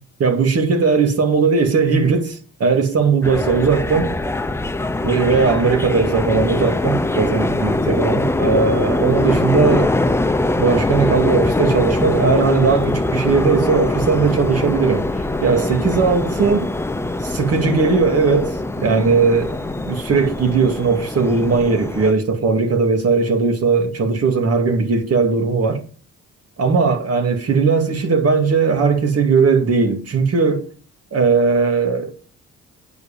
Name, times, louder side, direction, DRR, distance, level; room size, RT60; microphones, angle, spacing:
voice 1, 0.2-4.1 5.0-10.0 10.5-15.1 15.4-16.7 17.2-19.6 19.8-25.8 26.6-30.7 31.1-32.1, right 4 dB, 55° right, 2.2 m, -18 dB
sound 1, 3.2-22.1, left 2 dB, 10° left, 0.6 m, -22 dB
9.4 x 5.5 x 7.0 m
cardioid pair, 90°, 30 cm